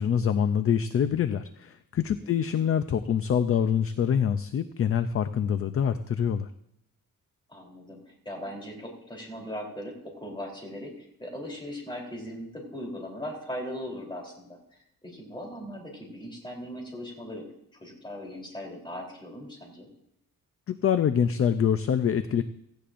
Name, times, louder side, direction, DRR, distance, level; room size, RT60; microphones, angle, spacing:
voice 1, 0.0-6.5 20.7-22.4, left 8 dB, 40° left, 11 dB, 0.4 m, -25 dB
voice 2, 2.2-2.6 7.5-14.6 15.0-17.4 17.7-19.9, equal, 15° left, 0 dB, 3.4 m, -39 dB
17.0 x 15.5 x 2.5 m, 0.78 s
wide cardioid pair, 160°, 35 cm